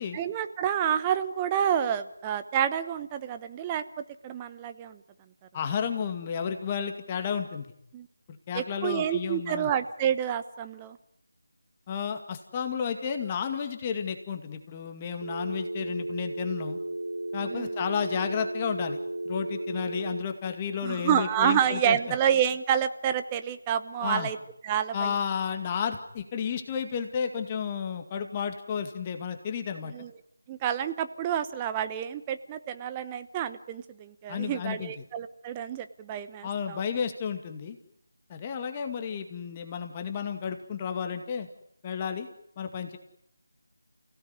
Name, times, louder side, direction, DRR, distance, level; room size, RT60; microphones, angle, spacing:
voice 1, 0.1-3.8 4.2-5.0 7.9-8.1 8.5-11.0 17.4-17.7 20.8-24.4 24.6-25.1 29.9-30.1 30.5-36.8, right 9 dB, 15° right, 10 dB, 1.0 m, -28 dB
voice 2, 5.5-7.7 8.3-9.7 11.9-16.8 17.3-19.0 19.2-22.0 24.0-24.3 24.9-29.9 34.3-34.9 36.4-37.8 38.3-41.5 41.8-42.3 42.6-43.0, left 7 dB, 20° left, 6 dB, 2.1 m, -32 dB
Telephone, 15.2-20.2, right 1 dB, 65° right, 4.2 m, -34 dB
29.5 x 17.0 x 9.7 m, 0.78 s
figure-of-eight pair, 165°, 0 cm